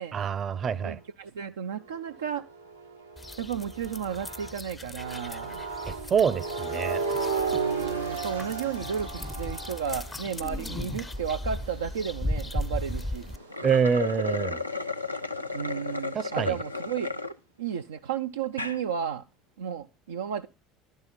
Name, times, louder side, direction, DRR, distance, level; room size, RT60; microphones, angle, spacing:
voice 1, 0.1-1.0 5.9-7.0 13.6-14.6 16.1-16.6, right 6 dB, 35° right, 0.7 m, -26 dB
voice 2, 0.7-2.4 3.4-5.7 7.5-13.3 15.5-17.1 17.6-19.2 19.6-20.5, right 8 dB, 70° right, 0.4 m, -33 dB
sound 1, 1.7-4.6 5.0-15.4, right 5 dB, 90° right, 1.2 m, -36 dB
sound 2, 3.2-13.4, left 1 dB, 15° left, 0.5 m, -37 dB
sound 3, 13.4-17.3 17.8-17.9 18.4-18.8, left 3 dB, 90° left, 0.5 m, -33 dB
11.0 x 5.5 x 5.9 m
figure-of-eight pair, 65°, 0 cm